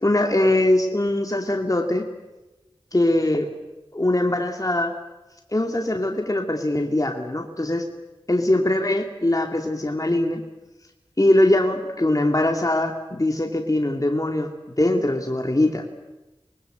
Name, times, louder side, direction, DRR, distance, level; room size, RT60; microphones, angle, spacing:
voice 1, 0.0-2.1 2.9-3.5 3.9-4.9 5.5-7.9 8.3-10.4 11.2-15.8, left 1 dB, 35° left, 3 dB, 2.5 m, -22 dB
26.0 x 20.5 x 8.1 m, 1.1 s
wide cardioid pair, 45°, 10 cm